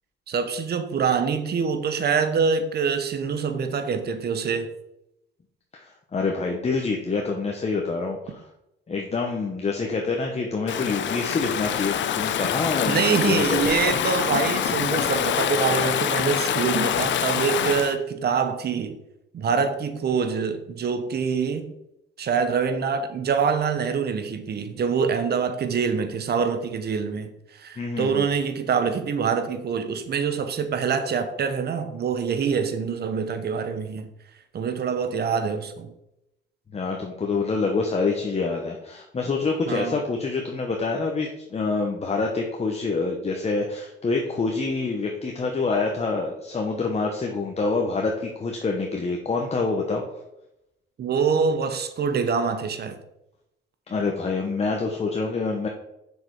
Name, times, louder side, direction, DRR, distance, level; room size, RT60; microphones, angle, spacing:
voice 1, 0.3-4.7 12.9-19.0 19.3-21.7 22.2-34.1 34.5-35.9 39.7-40.0 51.0-53.0, right 6 dB, 55° right, 1.2 m, -25 dB
voice 2, 5.7-8.4 8.9-13.8 27.8-28.3 36.7-50.0 53.9-55.7, left 4 dB, 30° left, 1.2 m, -26 dB
Stream / Ocean, 10.7-17.9, left 9 dB, 65° left, 0.7 m, -25 dB
7.0 x 6.6 x 4.9 m
cardioid pair, 90°, 20 cm